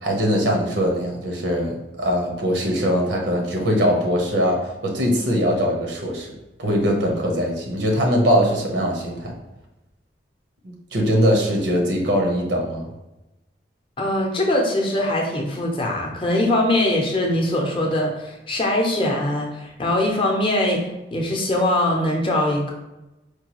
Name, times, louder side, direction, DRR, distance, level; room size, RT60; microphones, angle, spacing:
voice 1, 0.0-6.3 6.6-9.3 10.6-12.9, equal, 80° right, 0 dB, 0.9 m, -21 dB
voice 2, 14.0-22.7, left 1 dB, 30° left, -1 dB, 0.6 m, -22 dB
4.5 x 2.3 x 2.9 m, 0.98 s
head